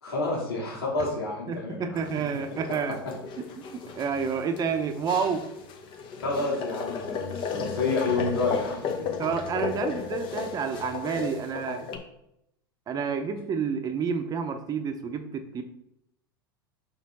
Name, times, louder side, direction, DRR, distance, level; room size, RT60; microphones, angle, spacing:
voice 1, 0.0-2.0 6.2-9.1, left 3 dB, 80° left, -4 dB, 2.2 m, -29 dB
voice 2, 1.5-3.0 3.6-5.4 9.2-11.9 12.9-15.6, right 6 dB, 30° right, 8 dB, 0.8 m, -29 dB
sound 1, 1.9-12.0, left 6 dB, 40° left, 1.0 m, -35 dB
5.6 x 4.2 x 4.1 m, 0.80 s
hypercardioid pair, 90°, 12 cm